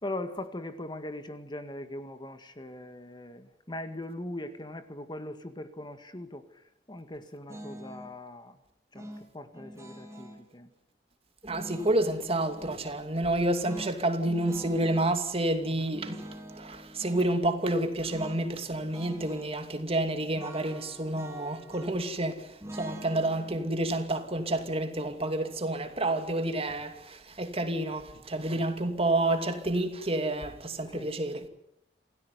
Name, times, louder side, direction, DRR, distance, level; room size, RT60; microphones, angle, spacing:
voice 1, 0.0-8.6 8.9-10.7 15.6-15.9 30.9-31.1, left 1 dB, 25° left, 1.9 m, -40 dB
sound 1, 7.5-8.1 8.9-10.4 11.4-12.8 13.6-15.1 15.9-17.3 18.1-18.4 18.7-19.5 20.3-22.1 22.6-25.7, equal, 20° right, 3.9 m, -46 dB
voice 2, 11.4-31.5, right 1 dB, 35° right, 2.6 m, -29 dB
27.5 x 17.5 x 9.6 m
head